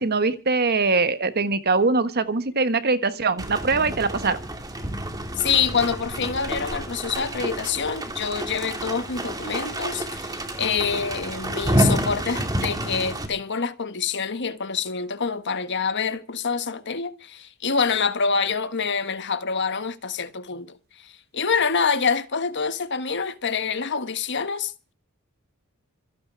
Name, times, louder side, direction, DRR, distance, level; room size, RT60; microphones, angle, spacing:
voice 1, 0.0-4.4, right 3 dB, 45° right, 1.4 m, -22 dB
sound 1, 3.4-13.3, right 1 dB, 20° right, 2.7 m, -29 dB
voice 2, 5.4-24.9, left 5 dB, 55° left, 1.4 m, -26 dB
26.0 x 9.4 x 4.7 m
head